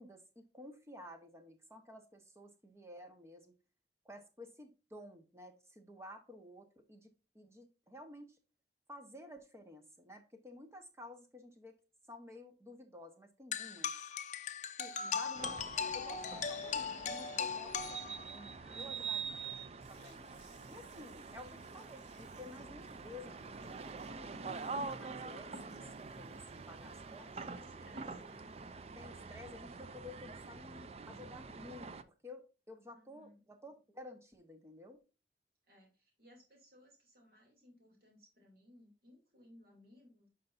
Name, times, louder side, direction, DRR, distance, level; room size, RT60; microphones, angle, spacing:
voice 1, 0.0-3.5 4.0-8.4 8.9-11.8 12.1-13.9 14.8-20.2 20.7-27.6 28.0-28.1 29.0-32.4 32.7-35.0, left 1 dB, 15° right, 1.1 m, -53 dB
sound 1, 13.5-18.5, left 6 dB, 40° left, 0.5 m, -39 dB
voice 2, 14.9-15.3 18.6-19.6 21.4-21.5 27.3-28.5 32.9-33.4 35.7-40.3, equal, 55° right, 2.8 m, -62 dB
sound 2, 15.3-32.0, right 4 dB, 35° right, 0.4 m, -46 dB
sound 3, 19.8-29.3, right 2 dB, 80° right, 3.3 m, -68 dB
9.4 x 5.5 x 2.6 m
head